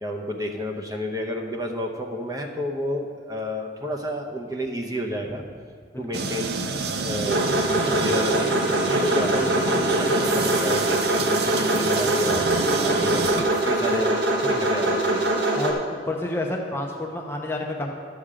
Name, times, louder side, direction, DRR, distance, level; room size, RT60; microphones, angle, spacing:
voice 1, 0.0-5.4 6.0-6.6 7.0-8.5 8.9-14.2 14.4-15.3, equal, 20° right, 1 dB, 0.9 m, -30 dB
voice 2, 5.9-6.3 14.4-14.7 15.6-15.8 16.1-17.9, left 2 dB, 15° left, 0 dB, 0.8 m, -29 dB
sound 1, 6.1-14.0, right 4 dB, 60° right, 0.6 m, -29 dB
sound 2, 7.2-15.7, right 1 dB, 80° right, 1.5 m, -23 dB
12.0 x 7.3 x 5.0 m, 2.2 s
head